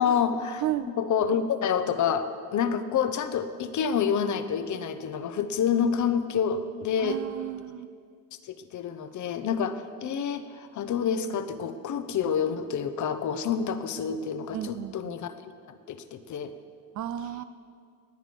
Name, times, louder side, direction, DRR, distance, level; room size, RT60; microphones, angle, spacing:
voice 1, 0.0-2.3 2.5-7.2 8.4-15.4 15.7-16.5, left 7 dB, 40° left, 11 dB, 0.9 m, -28 dB
voice 2, 7.0-7.9 14.5-15.1 17.0-17.4, right 12 dB, 40° right, 13 dB, 0.5 m, -33 dB
18.5 x 8.8 x 5.4 m, 2.2 s
supercardioid pair, 110°, 45 cm